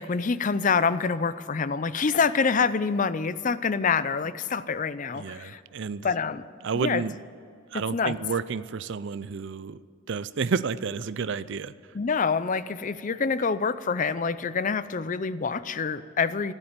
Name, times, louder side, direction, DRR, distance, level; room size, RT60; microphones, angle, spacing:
voice 1, 0.0-5.6 6.0-6.5 6.7-7.0 7.7-8.2 11.9-16.5, left 5 dB, 40° left, 15 dB, 0.5 m, -26 dB
voice 2, 5.1-6.1 6.6-7.1 7.7-9.8 10.1-11.7, right 5 dB, 60° right, 16 dB, 0.5 m, -30 dB
12.5 x 12.0 x 9.0 m, 2.2 s
head